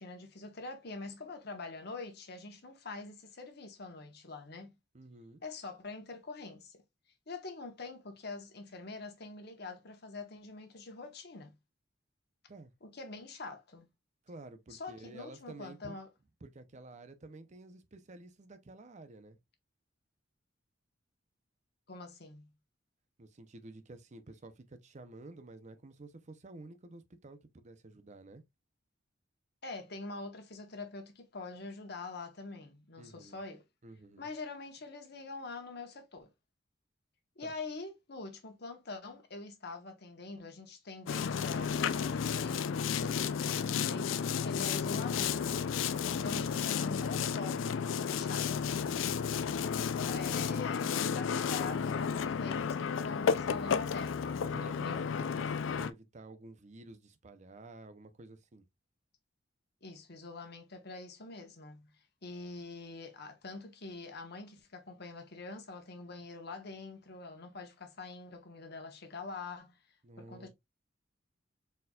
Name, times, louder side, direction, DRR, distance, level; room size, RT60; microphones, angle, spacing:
voice 1, 0.0-4.7 5.4-6.8 7.3-11.5 12.8-13.9 14.7-16.1 21.9-22.5 29.6-33.6 34.2-36.3 37.4-42.6 43.0-43.3 43.8-45.5 46.2-48.7 49.8-55.1 59.8-61.9 62.2-69.8 70.2-70.5, left 3 dB, 55° left, 1.1 m, -45 dB
voice 2, 4.9-5.4 12.5-12.7 14.3-16.0 16.4-19.4 23.2-28.4 33.0-33.4 33.8-34.3 37.4-37.5 54.4-58.6 70.0-70.5, right 2 dB, 35° right, 0.6 m, -51 dB
Boat Water vehicle, 41.1-55.9, left 6 dB, 80° left, 0.4 m, -32 dB
4.3 x 4.0 x 2.3 m
head